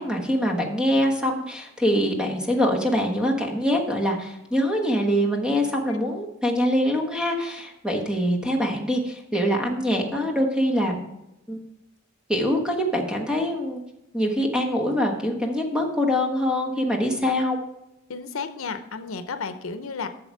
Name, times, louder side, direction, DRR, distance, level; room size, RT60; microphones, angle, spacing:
voice 1, 0.0-11.0 11.5-11.6 12.3-13.8 14.1-17.6, equal, 5° right, 1 dB, 1.3 m, -24 dB
voice 2, 18.1-20.1, left 5 dB, 80° left, 10 dB, 0.7 m, -32 dB
8.7 x 6.6 x 4.7 m, 0.88 s
head